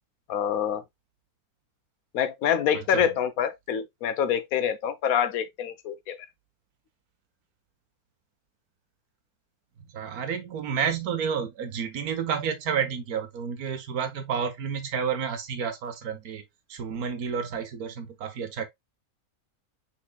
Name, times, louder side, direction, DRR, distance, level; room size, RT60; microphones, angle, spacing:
voice 1, 0.3-0.8 2.1-6.1, left 8 dB, 75° left, 1.1 m, -26 dB
voice 2, 9.9-16.4 16.7-18.6, right 7 dB, 80° right, 1.4 m, -30 dB
5.9 x 3.8 x 2.2 m
omnidirectional pair, 1.6 m